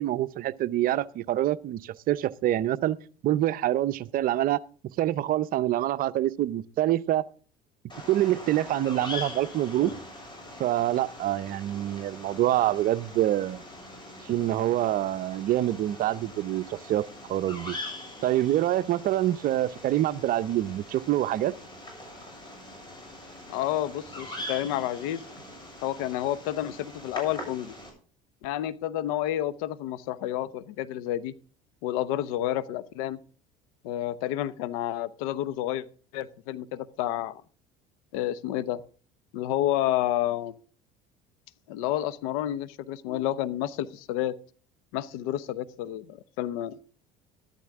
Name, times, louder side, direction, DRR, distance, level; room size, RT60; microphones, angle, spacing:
voice 1, 0.0-3.0 3.2-4.6 5.0-7.2 8.1-9.9 10.6-13.6 14.3-17.8 18.2-21.5, right 13 dB, 55° right, 0.7 m, -26 dB
Bird vocalization bird call bird song, 7.9-27.9, left 1 dB, 25° left, 7.7 m, -42 dB
voice 2, 23.5-25.3 25.8-27.7 28.4-31.3 31.8-33.2 33.8-35.8 36.1-37.4 38.1-38.8 39.3-40.5 41.7-44.3 44.9-46.8, left 13 dB, 85° left, 0.9 m, -30 dB
13.0 x 12.0 x 3.6 m
supercardioid pair, 95°, 18 cm